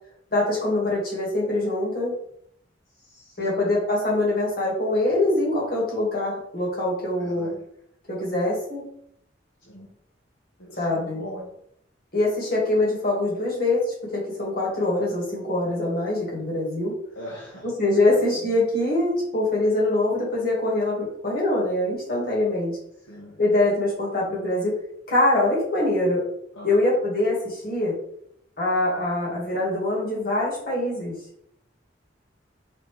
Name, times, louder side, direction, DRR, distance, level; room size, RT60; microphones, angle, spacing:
voice 1, 0.3-2.1 3.4-7.5 8.1-8.8 10.8-11.2 12.1-16.9 17.8-22.8 23.4-24.7 25.1-26.2 26.6-28.0 28.6-31.1, left 2 dB, 50° left, -4 dB, 1.8 m, -24 dB
voice 2, 3.0-3.6 7.2-7.6 9.6-9.9 10.6-11.5 17.1-17.7 17.9-18.1 18.4-18.6 23.1-23.4 26.5-26.8, equal, 80° left, -2 dB, 0.9 m, -41 dB
4.3 x 3.8 x 3.2 m, 0.72 s
head